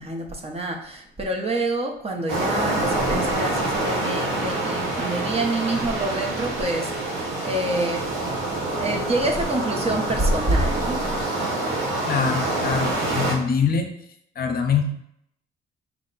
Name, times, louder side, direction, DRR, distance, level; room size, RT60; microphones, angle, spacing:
voice 1, 0.0-8.1 8.7-11.0, right 1 dB, 30° right, 1 dB, 0.8 m, -27 dB
sound 1, 2.3-13.3, right 2 dB, 90° right, 1.0 m, -26 dB
voice 2, 12.1-13.9 14.4-14.8, left 6 dB, 50° left, 4 dB, 0.6 m, -23 dB
4.7 x 2.2 x 3.8 m, 0.73 s
cardioid pair, 90°, 20 cm